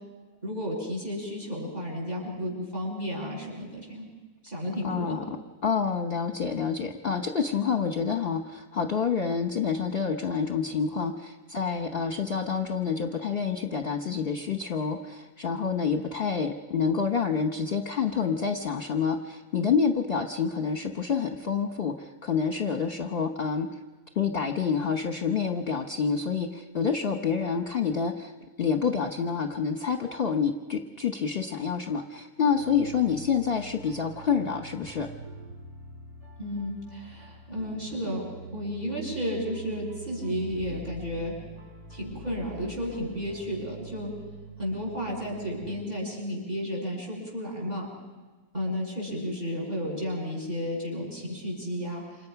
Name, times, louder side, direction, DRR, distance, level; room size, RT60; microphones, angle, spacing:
voice 1, 0.4-4.1 4.4-5.2 36.4-41.3 41.9-44.1 44.6-47.9 48.5-52.3, equal, 25° right, -1 dB, 7.9 m, -33 dB
voice 2, 4.8-5.4 5.6-23.7 24.1-28.3 28.6-35.1, left 6 dB, 45° left, 4 dB, 1.3 m, -28 dB
sound 1, 32.5-45.8, right 3 dB, 75° right, 4.8 m, -45 dB
29.0 x 27.0 x 5.9 m, 1.3 s
omnidirectional pair, 1.5 m